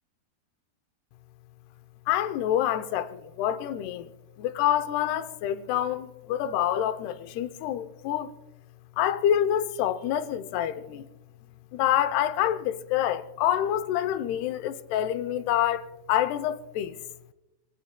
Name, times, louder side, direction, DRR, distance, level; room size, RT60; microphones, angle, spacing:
voice 1, 2.1-4.1 4.4-8.3 9.0-11.1 11.7-17.0, left 11 dB, 80° left, 2.7 m, -27 dB
24.5 x 24.5 x 2.2 m
omnidirectional pair, 4.7 m